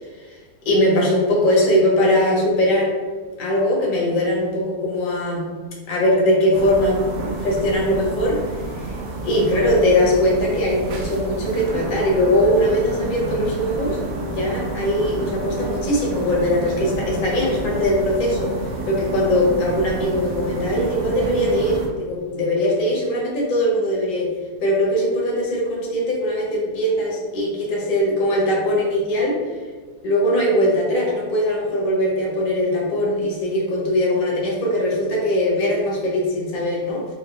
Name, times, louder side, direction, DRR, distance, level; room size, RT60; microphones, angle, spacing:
voice 1, 0.6-2.9 3.4-5.5 5.9-9.0 9.2-18.5 18.9-24.3 24.6-29.4 30.0-37.0, left 1 dB, 65° left, -3 dB, 0.5 m, -21 dB
sound 1, 6.5-21.9, right 2 dB, 75° right, 0.8 m, -29 dB
4.4 x 2.2 x 3.0 m, 1.4 s
omnidirectional pair, 2.2 m